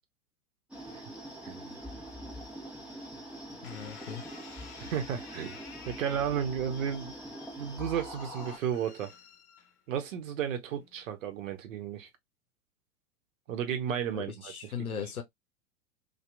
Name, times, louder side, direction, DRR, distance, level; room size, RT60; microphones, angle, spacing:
sound 1, 0.7-8.6, right 1 dB, 5° right, 0.9 m, -44 dB
voice 1, 1.4-1.7 4.8-5.6 5.8-7.1 7.6-9.1 9.9-12.1 13.5-14.5 14.8-15.0, right 8 dB, 60° right, 0.9 m, -33 dB
voice 2, 3.6-4.2 14.1-15.2, left 7 dB, 85° left, 0.7 m, -38 dB
sound 2, 3.6-10.0 10.7-11.1, left 7 dB, 55° left, 0.9 m, -53 dB
2.8 x 2.4 x 2.3 m
figure-of-eight pair, 95°, 43 cm